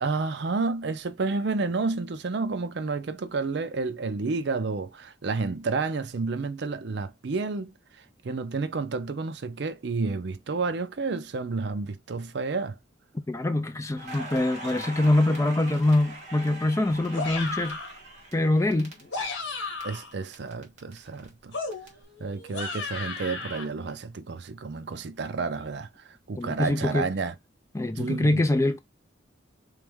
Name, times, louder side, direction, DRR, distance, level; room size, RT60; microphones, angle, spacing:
voice 1, 0.0-7.7 8.2-12.7 19.8-21.5 22.2-25.9 26.3-27.3 28.0-28.4, right 4 dB, 60° right, 0.5 m, -30 dB
voice 2, 13.3-17.8 18.3-18.9 26.4-27.1 27.7-28.8, left 2 dB, 15° left, 0.4 m, -24 dB
Crackle, 14.0-19.8 20.1-21.9, right 1 dB, 35° right, 1.5 m, -42 dB
sound 1, 17.1-18.0 18.9-20.1 21.5-23.7, left 3 dB, 70° left, 1.3 m, -34 dB
3.5 x 3.2 x 3.4 m
head